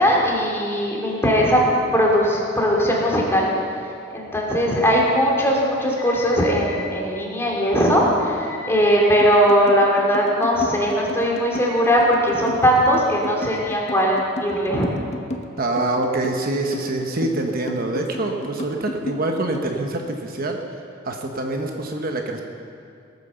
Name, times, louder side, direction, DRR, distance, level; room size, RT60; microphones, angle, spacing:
voice 1, 0.0-1.6 1.9-3.5 4.1-14.9, equal, 15° left, -3 dB, 2.7 m, -19 dB
sound 1, 9.2-19.7, left 1 dB, 35° left, 1.1 m, -33 dB
voice 2, 15.6-20.6 21.0-22.4, right 2 dB, 50° right, 3 dB, 1.1 m, -25 dB
17.5 x 9.3 x 6.9 m, 2.5 s
head